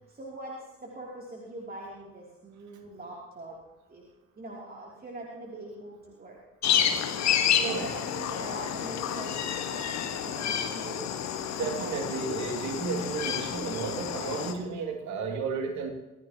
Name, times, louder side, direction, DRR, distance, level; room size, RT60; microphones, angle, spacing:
voice 1, 0.1-0.5 0.8-3.6 3.9-4.0 4.4-6.4 6.7-6.9 7.5-11.2 11.7-12.5, right 2 dB, 25° right, -3 dB, 3.0 m, -43 dB
sound 1, 6.6-14.5, left 9 dB, 55° left, 1.5 m, -29 dB
voice 2, 7.6-7.9 11.6-15.9, right 5 dB, 55° right, 4 dB, 2.5 m, -33 dB
25.0 x 15.5 x 3.0 m, 1.0 s
figure-of-eight pair, 45°, 34 cm